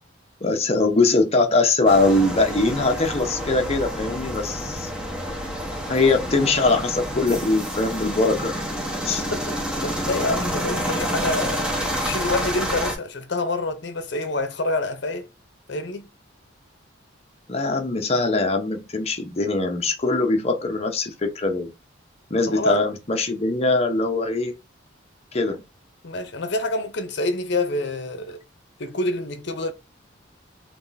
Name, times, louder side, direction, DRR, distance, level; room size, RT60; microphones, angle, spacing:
voice 1, 0.4-4.9 5.9-8.6 9.0-9.2 17.5-21.7 22.3-24.5 25.3-25.6, left 3 dB, 30° left, 0.8 m, -22 dB
sound 1, 1.8-12.9, equal, 5° right, 1.0 m, -28 dB
voice 2, 9.2-15.3 15.7-16.1 22.5-22.8 26.0-28.4 28.8-29.7, left 2 dB, 60° left, 0.8 m, -27 dB
3.5 x 3.0 x 4.0 m
head